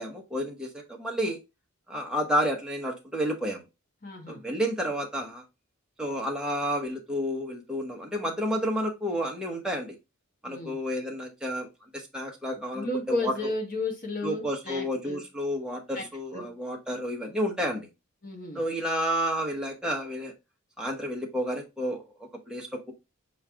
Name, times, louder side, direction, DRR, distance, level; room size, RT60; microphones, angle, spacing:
voice 1, 0.0-1.4 1.9-3.6 4.3-5.4 6.0-9.9 10.4-11.7 11.9-13.5 14.2-17.9 18.5-20.3 20.8-22.9, equal, 5° right, 0 dB, 0.9 m, -30 dB
voice 2, 4.0-4.4 10.5-10.8 12.7-15.2 15.9-16.0 16.3-16.5 18.2-18.6, left 2 dB, 40° left, 3 dB, 1.2 m, -33 dB
4.8 x 3.1 x 3.4 m, 0.24 s
head